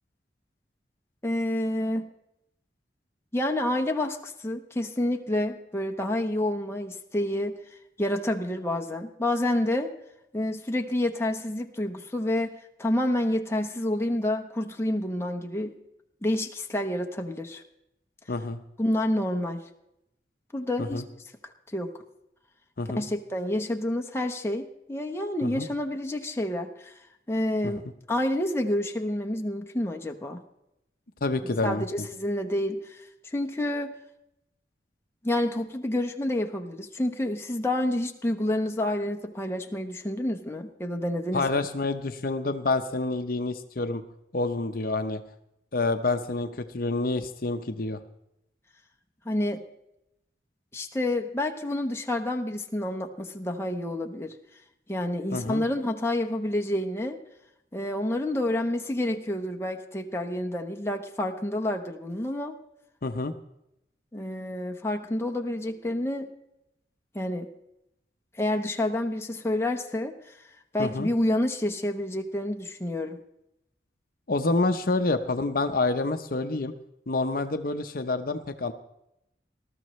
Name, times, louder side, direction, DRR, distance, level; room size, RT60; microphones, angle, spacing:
voice 1, 1.2-2.1 3.3-7.6 8.0-9.9 10.3-15.8 16.2-17.6 18.8-19.6 20.5-21.0 21.7-21.9 22.9-26.9 27.3-27.8 28.1-30.4 31.4-33.0 33.3-33.9 35.2-41.4 49.2-49.6 50.7-54.3 54.9-57.2 57.7-62.5 64.1-66.3 67.1-67.5 68.4-70.1 70.7-73.2, left 1 dB, 15° left, 2 dB, 1.0 m, -28 dB
voice 2, 18.3-18.6 20.8-21.0 22.8-23.0 25.4-25.7 27.6-27.7 31.2-31.8 41.3-44.0 44.3-45.2 45.7-46.5 46.7-48.0 55.3-55.6 63.0-63.3 70.8-71.1 74.3-76.7 77.1-78.7, left 3 dB, 55° left, 7 dB, 0.8 m, -27 dB
20.0 x 13.0 x 3.1 m, 0.83 s
head